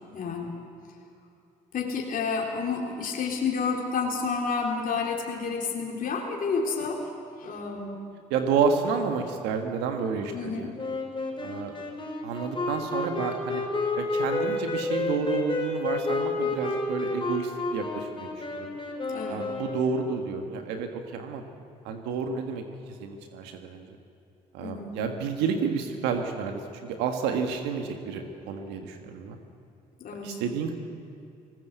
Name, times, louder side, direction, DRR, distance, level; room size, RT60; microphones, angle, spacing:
voice 1, 0.1-0.5 1.7-7.1 7.4-8.0 10.3-10.7 19.1-19.5 24.6-24.9 30.0-30.4, left 5 dB, 55° left, 0 dB, 3.7 m, -30 dB
voice 2, 8.3-10.7 11.4-11.7 12.2-13.6 14.0-18.8 19.3-21.4 21.8-24.0 24.5-29.4 30.1-30.7, right 5 dB, 90° right, 5 dB, 1.6 m, -30 dB
Wind instrument woodwind instrument, 10.8-20.2, left 3 dB, 30° left, 5.3 m, -30 dB
19.0 x 19.0 x 8.1 m, 2.7 s
supercardioid pair, 70°, 17 cm